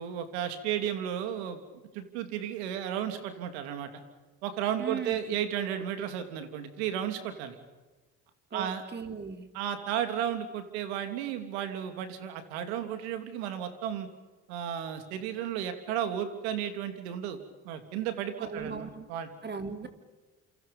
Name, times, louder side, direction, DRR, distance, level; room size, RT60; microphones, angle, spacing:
voice 1, 0.0-1.6 1.9-4.0 4.4-7.6 8.5-8.8 9.5-14.1 14.5-17.4 17.6-19.3, right 9 dB, 90° right, 8 dB, 3.0 m, -33 dB
voice 2, 4.8-5.2 8.5-9.4 18.4-19.1 19.4-19.9, right 5 dB, 35° right, 6 dB, 3.6 m, -37 dB
28.5 x 28.5 x 5.5 m, 1.2 s
supercardioid pair, 70°, 32 cm